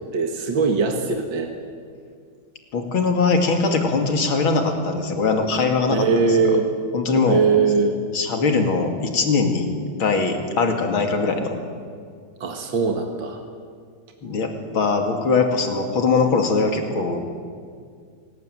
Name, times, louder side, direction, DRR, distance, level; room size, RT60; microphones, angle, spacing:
voice 1, 0.1-1.5 5.9-6.7 7.3-7.9 12.4-13.4, right 5 dB, 70° right, 3 dB, 2.6 m, -21 dB
voice 2, 2.7-6.6 6.9-7.5 8.1-9.7 10.0-11.6 14.2-17.2, left 4 dB, 90° left, 4 dB, 3.3 m, -21 dB
26.5 x 19.0 x 9.4 m, 2.1 s
omnidirectional pair, 2.2 m